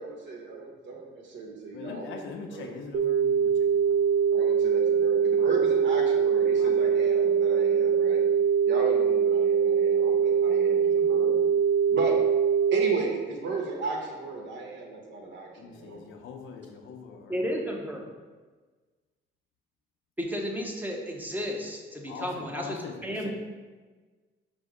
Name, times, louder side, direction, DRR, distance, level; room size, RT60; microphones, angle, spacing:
voice 1, 0.0-3.0 4.3-8.2 8.6-11.4 11.9-12.1 12.7-16.0, right 3 dB, 65° right, 0 dB, 1.0 m, -35 dB
voice 2, 1.7-4.3 5.4-5.5 6.6-7.1 15.6-17.4 22.1-23.3, left 6 dB, 80° left, 4 dB, 0.6 m, -42 dB
sound 1, 2.9-13.0, right 7 dB, 45° right, 0.4 m, -23 dB
voice 3, 17.3-18.1 20.2-23.3, equal, 10° right, 0 dB, 0.8 m, -33 dB
5.2 x 2.1 x 4.9 m, 1.4 s
cardioid pair, 90°, 20 cm